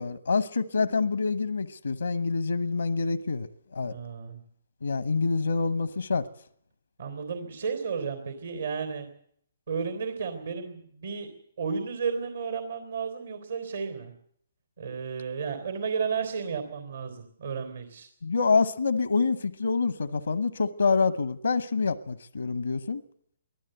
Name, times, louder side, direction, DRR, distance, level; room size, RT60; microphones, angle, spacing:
voice 1, 0.0-4.0 4.8-6.3 18.2-23.0, left 4 dB, 90° left, 0.9 m, -26 dB
voice 2, 3.8-4.4 7.0-9.1 9.7-11.3 11.6-14.1 14.8-18.1, right 6 dB, 75° right, 3.6 m, -33 dB
23.5 x 15.0 x 8.0 m
hypercardioid pair, 140°, 0 cm